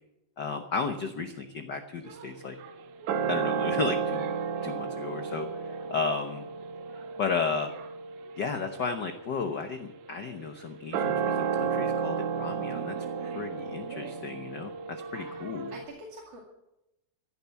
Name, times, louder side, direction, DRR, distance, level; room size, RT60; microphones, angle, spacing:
voice 1, 0.4-2.5 3.3-4.3 4.6-6.4 7.2-7.7 8.4-13.0 13.2-15.7, left 5 dB, 85° left, 7 dB, 0.9 m, -33 dB
sound 1, 2.1-15.8, right 6 dB, 80° right, 2.5 m, -33 dB
voice 2, 15.7-16.4, right 1 dB, 55° right, -2 dB, 3.4 m, -45 dB
15.0 x 10.5 x 7.1 m, 0.89 s
omnidirectional pair, 3.5 m